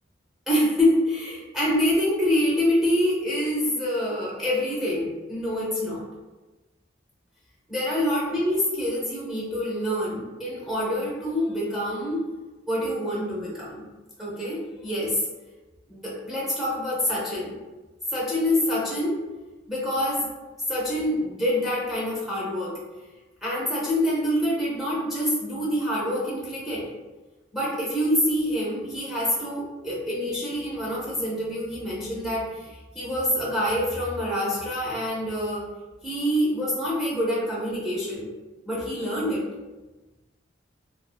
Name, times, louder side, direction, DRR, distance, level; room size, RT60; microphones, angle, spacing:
voice 1, 0.5-6.0 7.7-12.2 12.7-13.8 14.2-15.2 15.9-17.6 18.1-19.2 19.7-20.3 20.7-22.7 23.4-26.9 27.5-35.7 36.0-38.3 38.6-39.5, left 1 dB, ahead, -6 dB, 0.6 m, -26 dB
2.5 x 2.4 x 2.2 m, 1.2 s
head